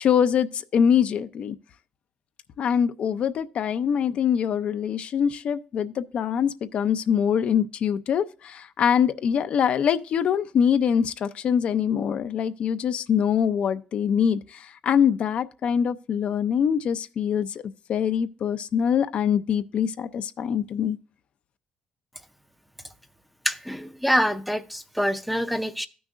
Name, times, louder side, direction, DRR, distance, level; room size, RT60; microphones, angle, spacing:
voice 1, 0.0-1.6 2.6-21.0, left 8 dB, 55° left, 0.4 m, -24 dB
voice 2, 23.4-25.9, equal, ahead, 0.5 m, -25 dB
14.0 x 6.2 x 2.4 m
cardioid pair, 125°, 2 cm